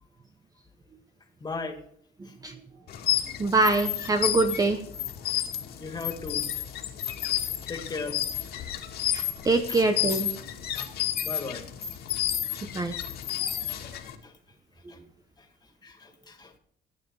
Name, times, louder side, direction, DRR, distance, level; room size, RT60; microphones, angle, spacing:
voice 1, 1.4-1.8 2.2-2.4 5.8-6.5 7.7-8.2 9.7-9.8 11.2-11.7 12.9-13.0 13.4-13.9 14.2-14.3 14.9-15.0 15.4-15.5 15.8-16.6, left 4 dB, 25° left, 4 dB, 2.5 m, -37 dB
voice 2, 2.2-2.6 3.4-4.8 9.1-10.3 12.7-13.0, right 3 dB, 20° right, 7 dB, 1.0 m, -24 dB
sound 1, 2.9-14.2, left 11 dB, 70° left, 2.2 m, -31 dB
16.5 x 8.8 x 4.9 m, 0.64 s
cardioid pair, 110°, 17 cm